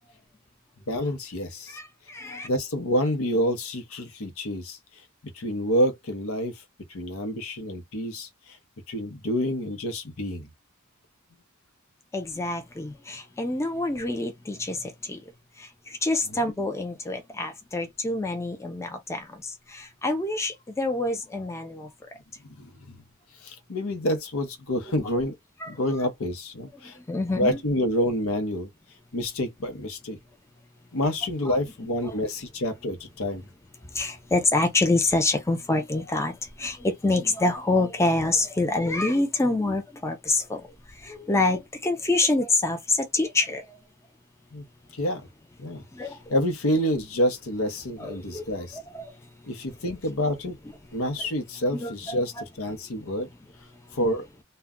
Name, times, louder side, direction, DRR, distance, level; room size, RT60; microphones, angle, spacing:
voice 1, 0.9-1.8 2.4-4.8 5.3-6.6 6.9-8.6 8.9-10.5 16.3-16.4 22.6-23.0 23.4-25.4 25.7-27.0 27.3-28.7 29.1-30.2 30.9-33.5 44.5-44.6 44.9-45.3 45.6-48.8 49.4-50.6 50.9-53.3 53.9-54.2, equal, 75° left, 0.8 m, -28 dB
voice 2, 1.7-2.5 12.1-15.2 15.6-21.9 25.6-25.7 27.1-27.6 31.5-31.6 33.9-40.7 41.0-43.7 45.9-46.2 48.0-49.1 51.7-52.2, left 2 dB, 15° left, 0.4 m, -26 dB
2.3 x 2.1 x 3.6 m
head